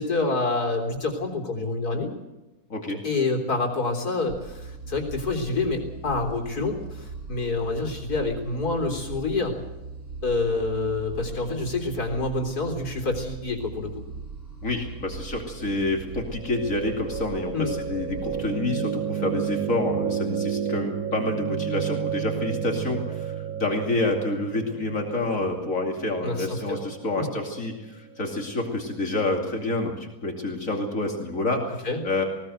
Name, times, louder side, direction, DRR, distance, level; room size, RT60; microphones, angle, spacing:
voice 1, 0.0-2.1 3.0-9.5 10.2-14.0 17.5-17.7 26.2-26.8 27.2-27.3 31.8-32.0, left 3 dB, 80° left, 3 dB, 4.1 m, -27 dB
sound 1, 4.3-18.5, right 4 dB, 50° right, 3.7 m, -40 dB
voice 2, 14.6-32.2, left 2 dB, 60° left, 2 dB, 3.0 m, -28 dB
sound 2, 16.4-28.4, right 8 dB, 70° right, 1.5 m, -32 dB
19.5 x 19.0 x 8.0 m, 1.0 s
omnidirectional pair, 1.6 m